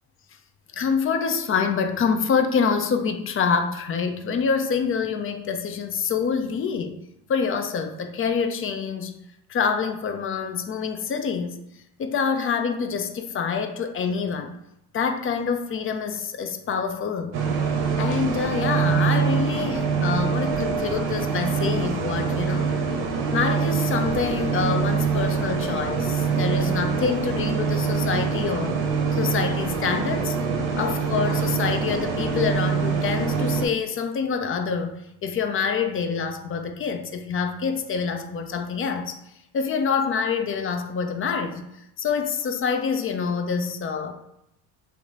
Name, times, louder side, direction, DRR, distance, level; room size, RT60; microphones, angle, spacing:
voice 1, 0.7-7.0 7.3-9.1 9.5-11.6 12.0-14.6 14.9-17.4 18.0-22.7 23.3-28.8 29.1-30.4 30.8-35.0 35.2-39.2 39.5-41.7 42.0-44.1, left 6 dB, 30° left, 0.4 m, -26 dB
sound 1, 17.3-33.7, right 5 dB, 55° right, 0.7 m, -24 dB
2.9 x 2.1 x 3.7 m
hypercardioid pair, 65°, 45 cm